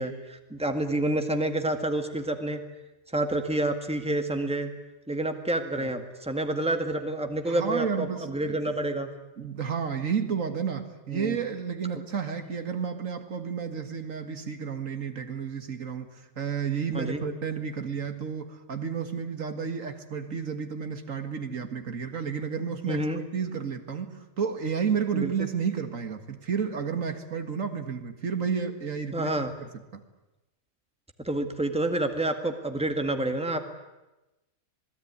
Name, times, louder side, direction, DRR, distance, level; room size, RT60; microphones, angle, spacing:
voice 1, 0.0-2.6 3.1-4.7 5.1-9.1 11.1-11.4 16.9-17.2 22.9-23.2 25.1-25.3 29.1-29.5 31.2-33.6, right 1 dB, 5° right, 6 dB, 1.9 m, -28 dB
voice 2, 7.5-8.6 9.4-29.3 29.9-30.0, right 6 dB, 80° right, 8 dB, 2.2 m, -31 dB
26.5 x 19.5 x 9.7 m, 1.0 s
omnidirectional pair, 1.4 m